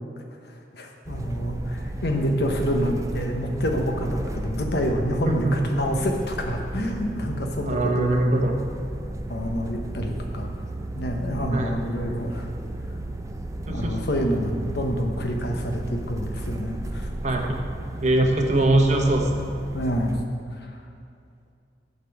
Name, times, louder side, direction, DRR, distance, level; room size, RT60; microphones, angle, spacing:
voice 1, 0.7-8.1 9.3-10.5 11.0-12.5 13.7-17.1 19.7-20.1 20.6-20.7, equal, 60° left, 2 dB, 1.1 m, -27 dB
sound 1, 1.0-20.2, right 1 dB, 20° right, 0.5 m, -34 dB
voice 2, 5.3-5.6 7.6-8.6 11.5-11.8 13.7-14.0 17.2-17.4 18.0-19.5, right 1 dB, 40° right, 2 dB, 1.0 m, -22 dB
8.5 x 5.3 x 7.2 m, 2.4 s
head